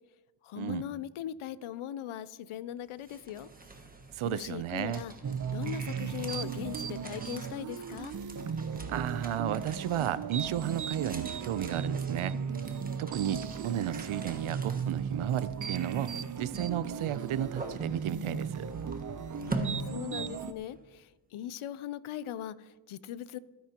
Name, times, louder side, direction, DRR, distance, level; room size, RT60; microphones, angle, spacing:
voice 1, 0.4-3.5 4.2-5.1 5.5-8.1 19.4-23.4, left 10 dB, 90° left, 17 dB, 0.6 m, -40 dB
sound 1, 2.8-20.8, right 2 dB, 20° right, 1.4 m, -45 dB
voice 2, 4.1-5.0 8.9-12.4 13.0-18.7, right 10 dB, 90° right, 16 dB, 0.7 m, -33 dB
sound 2, 5.2-20.5, right 7 dB, 40° right, 0.6 m, -36 dB
22.5 x 10.5 x 2.9 m, 1.3 s
cardioid pair, 95°, 48 cm